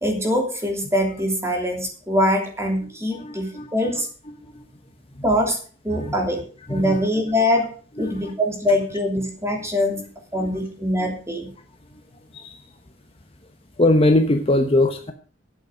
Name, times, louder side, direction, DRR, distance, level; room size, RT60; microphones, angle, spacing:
voice 1, 0.0-4.1 5.2-5.6 5.8-6.4 6.7-7.7 8.0-10.1 10.3-11.5, left 1 dB, 15° right, 1 dB, 3.0 m, -23 dB
voice 2, 3.1-3.7 3.9-4.0 4.4-4.6 5.1-5.2 5.9-6.1 6.7-7.1 8.0-8.3 10.3-10.5 11.0-11.1 11.9-12.0 12.3-12.7 13.8-15.1, left 1 dB, 30° left, 5 dB, 1.1 m, -22 dB
11.5 x 8.2 x 6.4 m, 0.41 s
head